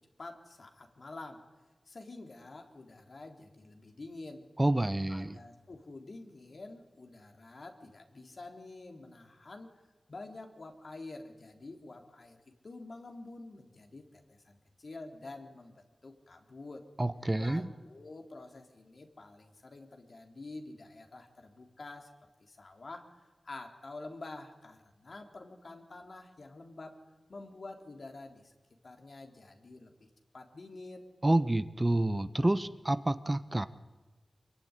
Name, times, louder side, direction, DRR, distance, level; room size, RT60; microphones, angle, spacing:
voice 1, 0.2-1.4 1.9-4.5 5.1-9.7 10.1-16.9 17.4-22.1 22.4-27.0 27.3-28.5 28.8-29.9 30.3-31.1, left 2 dB, 65° left, 3 dB, 3.7 m, -48 dB
voice 2, 4.6-5.4 17.0-17.7 31.2-33.7, right 1 dB, 25° right, 12 dB, 1.1 m, -28 dB
24.5 x 22.5 x 9.9 m, 1.2 s
cardioid pair, 45°, 0 cm